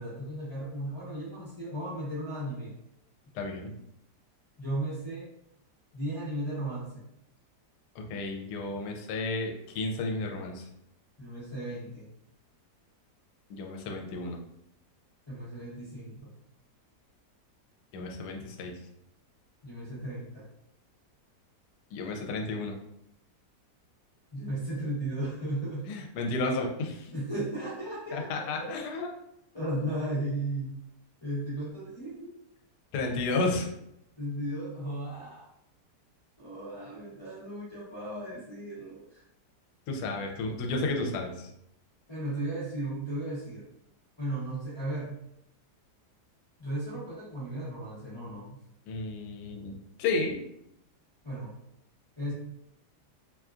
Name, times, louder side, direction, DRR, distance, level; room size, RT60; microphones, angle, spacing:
voice 1, 0.0-2.7 4.6-5.3 5.9-7.0 11.2-12.1 15.3-16.3 19.6-20.4 24.3-25.9 27.1-28.4 29.5-30.8 31.2-32.3 34.2-35.5 36.4-39.2 42.1-43.7 44.2-45.2 46.6-48.6 51.2-51.5 52.2-52.3, right 1 dB, 45° left, -9 dB, 0.3 m, -35 dB
voice 2, 3.3-3.7 7.9-10.6 13.5-14.4 17.9-18.7 21.9-22.7 25.9-27.1 28.1-29.1 32.9-33.7 39.9-41.5 48.9-50.4, left 3 dB, 75° left, 2 dB, 1.1 m, -32 dB
2.9 x 2.3 x 2.4 m, 0.77 s
omnidirectional pair, 1.8 m